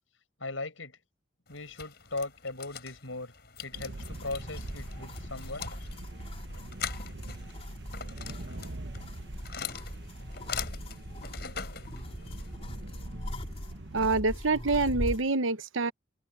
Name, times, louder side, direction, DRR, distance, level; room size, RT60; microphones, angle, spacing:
voice 1, 0.4-1.0 1.5-3.3 3.6-5.7, left 2 dB, 85° left, 7.5 m, -38 dB
sound 1, 1.5-12.5, left 7 dB, 55° left, 6.2 m, -43 dB
sound 2, 3.7-14.1, right 2 dB, 60° right, 1.1 m, -43 dB
sound 3, 3.9-15.3, equal, 30° left, 3.9 m, -41 dB
voice 2, 13.9-15.9, right 3 dB, 85° right, 1.0 m, -26 dB
head